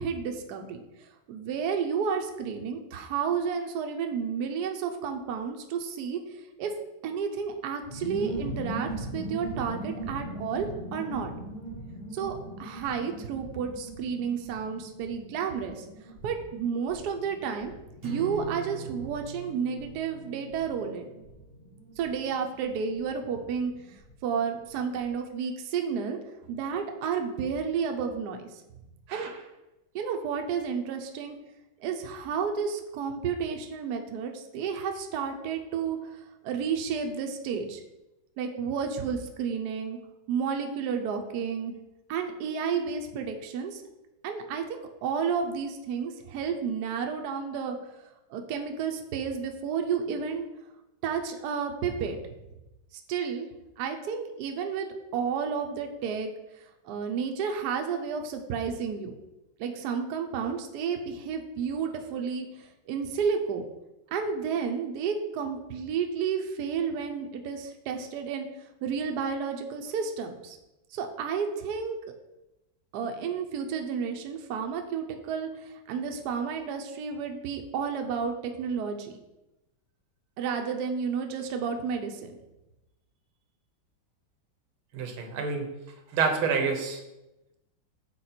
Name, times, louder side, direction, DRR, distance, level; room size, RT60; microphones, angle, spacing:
voice 1, 0.0-6.7 7.0-11.3 12.1-15.9 16.2-17.7 18.0-21.1 22.0-26.2 26.5-28.5 29.1-29.3 29.9-31.4 31.8-37.8 38.4-40.0 40.3-41.7 42.1-43.8 44.2-47.9 48.3-50.5 51.0-52.2 53.1-53.5 53.8-56.3 56.5-59.1 59.6-63.6 64.1-68.5 68.8-70.6 70.9-72.0 72.9-79.1 80.4-82.3, right 6 dB, 65° right, 4 dB, 1.1 m, -31 dB
sound 1, 7.8-24.1 24.4-24.5 24.7-25.1, right 1 dB, 35° left, 0.6 m, -41 dB
sound 2, 18.0-22.4, right 5 dB, 50° right, 0.7 m, -43 dB
voice 2, 84.9-85.7 86.1-87.0, right 5 dB, 90° right, 4 dB, 1.8 m, -28 dB
6.6 x 4.3 x 4.3 m, 0.96 s
omnidirectional pair, 2.2 m